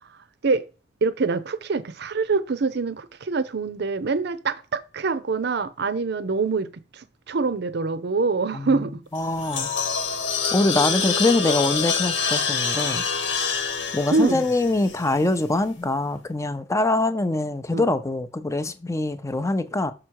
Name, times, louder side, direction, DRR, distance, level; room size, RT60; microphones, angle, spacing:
voice 1, 1.0-9.0 14.1-14.4 17.7-17.9, right 4 dB, 60° right, 0.6 m, -25 dB
voice 2, 8.5-8.8 9.1-9.7 10.5-13.0 13.9-19.9, left 2 dB, 15° left, 0.6 m, -24 dB
sound 1, 9.2-15.4, left 5 dB, 75° left, 1.5 m, -26 dB
6.3 x 4.8 x 4.6 m
head